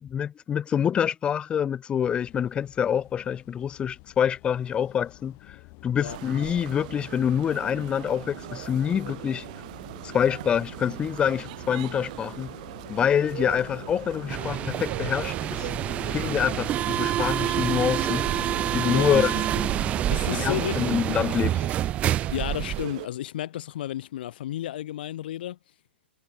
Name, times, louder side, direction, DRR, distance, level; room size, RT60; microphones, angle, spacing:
voice 1, 0.0-5.6 5.8-9.5 10.0-12.5 12.9-15.7 16.1-18.3 18.7-19.3 20.4-21.7, left 8 dB, 15° left, 0.7 m, -26 dB
sound 1, 2.0-20.5, left 34 dB, 40° left, 4.7 m, -44 dB
sound 2, 6.0-23.1, right 20 dB, 45° right, 1.0 m, -40 dB
sound 3, 14.3-22.8, right 12 dB, 20° right, 0.5 m, -27 dB
voice 2, 18.9-19.2 19.6-19.7 20.1-20.8 22.3-25.6, left 12 dB, 60° left, 0.9 m, -32 dB
hypercardioid pair, 135°, 6 cm